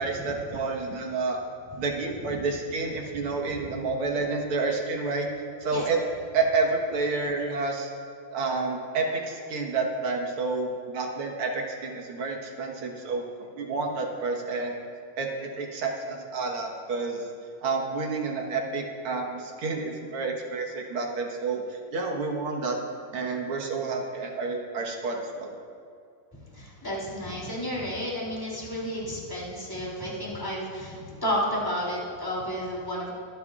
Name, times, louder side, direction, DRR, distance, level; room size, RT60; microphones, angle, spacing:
voice 1, 0.0-1.4 1.8-5.3 5.6-6.0 6.3-7.9 8.3-13.2 13.6-14.8 15.2-17.3 17.6-22.8 23.1-25.5, right 3 dB, 75° right, 1 dB, 2.2 m, -29 dB
voice 2, 26.5-33.1, equal, 10° left, -5 dB, 2.8 m, -32 dB
23.5 x 9.3 x 2.5 m, 2.3 s
omnidirectional pair, 2.4 m